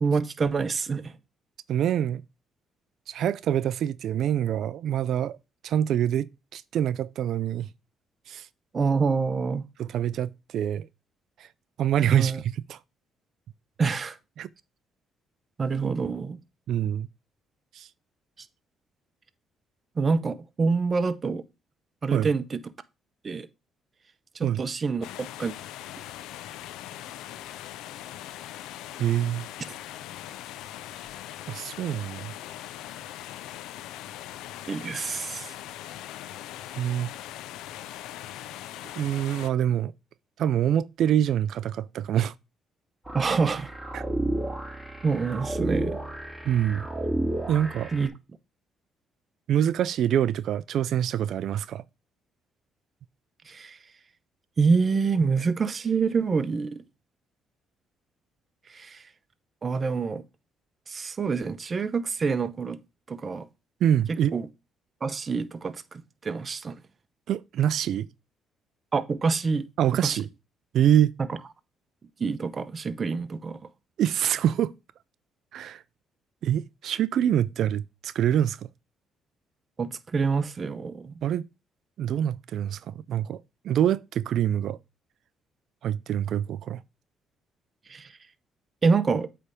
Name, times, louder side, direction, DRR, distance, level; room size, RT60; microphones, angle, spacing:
voice 1, 0.0-1.1 8.7-9.6 12.1-12.4 13.8-14.2 15.6-16.4 18.4-18.5 20.0-21.5 22.0-22.7 23.2-23.5 24.3-25.5 34.7-35.5 43.1-43.7 45.0-46.0 47.9-48.2 53.5-53.8 54.6-56.8 58.7-59.0 59.6-60.2 60.9-62.8 63.1-63.5 64.1-64.5 65.0-66.8 68.9-69.7 70.0-70.3 71.3-71.4 72.2-73.6 79.8-81.2 87.9-88.1 88.8-89.3, right 4 dB, 40° right, 0.7 m, -27 dB
voice 2, 1.7-2.2 3.1-5.4 5.6-7.7 8.3-8.5 9.8-10.9 11.4-11.5 11.8-12.8 14.4-14.5 16.7-17.1 17.7-17.9 22.1-22.3 24.4-24.6 29.0-29.5 31.5-32.3 36.8-37.1 39.0-39.9 40.4-42.3 43.9-44.0 46.5-46.9 47.5-47.9 49.5-51.8 63.8-64.3 67.3-68.1 69.8-70.3 70.7-71.1 74.0-74.7 75.5-75.8 76.4-78.6 81.2-81.5 82.0-84.8 85.8-86.8, right 10 dB, 70° right, 0.3 m, -25 dB
sound 1, 25.0-39.5, left 13 dB, 80° left, 0.4 m, -40 dB
sound 2, 43.1-48.1, right 1 dB, 5° right, 2.3 m, -31 dB
8.1 x 3.4 x 5.0 m
supercardioid pair, 65°, 0 cm